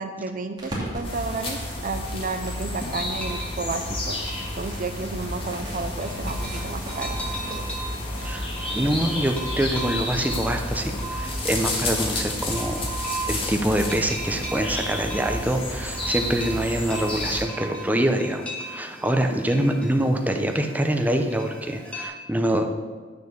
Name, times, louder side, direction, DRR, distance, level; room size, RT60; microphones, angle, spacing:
voice 1, 0.0-7.2 7.4-7.6, right 3 dB, 45° right, 8 dB, 0.6 m, -32 dB
sound 1, 0.6-7.3, right 1 dB, 25° right, 2.6 m, -40 dB
sound 2, 1.0-17.4, left 1 dB, 30° left, 1.8 m, -30 dB
sound 3, 2.8-22.1, right 2 dB, 5° left, 1.6 m, -38 dB
voice 2, 8.2-12.9 13.3-22.7, right 1 dB, 10° right, 4 dB, 0.7 m, -25 dB
8.7 x 6.8 x 6.5 m, 1.5 s
head